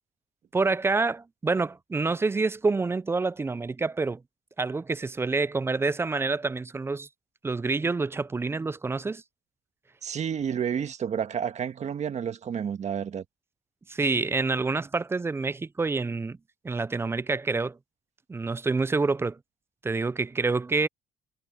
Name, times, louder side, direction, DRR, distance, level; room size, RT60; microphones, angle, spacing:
voice 1, 0.5-4.2 4.6-7.1 7.4-9.2 13.9-16.4 16.6-17.8 18.3-19.4 19.8-20.9, right 3 dB, 15° right, 0.4 m, -27 dB
voice 2, 10.0-13.2, right 8 dB, 40° right, 1.6 m, -30 dB
cardioid pair, 110°, 17 cm